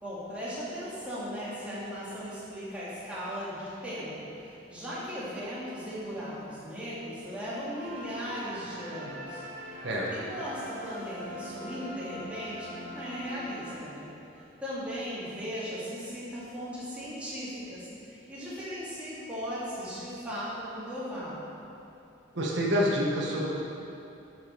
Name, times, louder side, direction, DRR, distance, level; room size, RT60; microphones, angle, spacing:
voice 1, 0.0-9.8 10.1-14.1 14.6-21.6, equal, 5° right, -10 dB, 2.3 m, -37 dB
sound 1, 7.7-14.3, equal, 40° right, 1.6 m, -43 dB
voice 2, 22.3-23.5, equal, 65° right, -4 dB, 1.3 m, -27 dB
10.5 x 6.1 x 4.6 m, 2.7 s
head